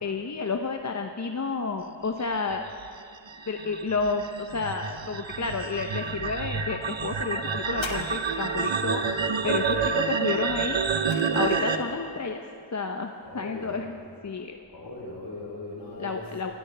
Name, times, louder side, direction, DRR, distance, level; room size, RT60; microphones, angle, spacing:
voice 1, 0.0-2.7 3.5-9.0 9.4-10.8 11.3-12.4 12.7-14.0 14.2-14.6 16.0-16.5, left 4 dB, 40° left, 4 dB, 0.7 m, -30 dB
sound 1, 2.5-11.8, right 5 dB, 85° right, 0.9 m, -28 dB
sound 2, 7.7-8.8 10.5-11.9 12.7-12.8, left 5 dB, 85° left, 1.1 m, -41 dB
voice 2, 13.2-13.8 14.7-16.5, left 2 dB, 65° left, -3 dB, 4.2 m, -39 dB
23.5 x 13.5 x 3.3 m, 2.5 s
wide cardioid pair, 80°, 44 cm